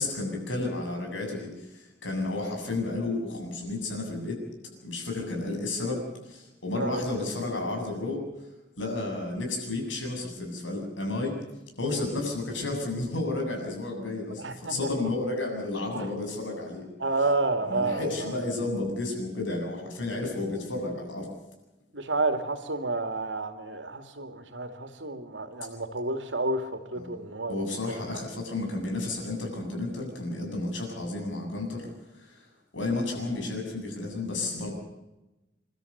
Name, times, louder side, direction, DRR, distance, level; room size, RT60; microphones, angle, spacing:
voice 1, 0.0-4.4 4.8-8.3 8.8-11.4 11.8-16.9 17.7-21.3 26.9-27.2 27.5-32.5 32.7-34.7, left 2 dB, 90° left, 2 dB, 7.8 m, -32 dB
voice 2, 14.4-15.1 15.9-16.1 17.0-18.3 21.9-28.0, right 2 dB, 75° right, 7 dB, 2.7 m, -30 dB
28.5 x 13.0 x 8.2 m, 1.0 s
head